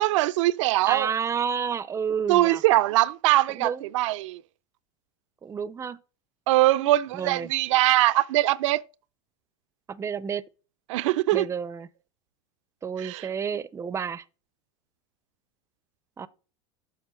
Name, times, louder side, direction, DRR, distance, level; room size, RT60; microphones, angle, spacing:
voice 1, 0.0-1.1 2.3-4.4 6.5-8.8 10.9-11.4 13.0-13.2, right 16 dB, 80° right, 0.4 m, -22 dB
voice 2, 0.8-2.6 3.5-3.9 5.4-6.0 7.1-7.5 9.9-10.4 11.3-11.9 12.8-14.2 16.2-16.3, right 6 dB, 20° right, 0.4 m, -30 dB
7.1 x 4.5 x 5.6 m
supercardioid pair, 110°, 16 cm